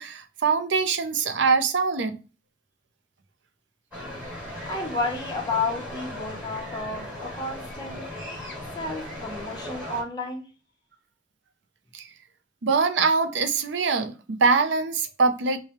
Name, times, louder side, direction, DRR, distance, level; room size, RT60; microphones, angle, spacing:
voice 1, 0.0-2.2 11.9-12.1 12.6-15.6, right 4 dB, 80° right, 0.5 m, -23 dB
sound 1, 3.9-10.0, left 1 dB, 10° right, 1.6 m, -37 dB
voice 2, 4.6-8.1 8.7-10.5, left 3 dB, 25° left, 0.9 m, -31 dB
3.3 x 2.2 x 4.2 m
head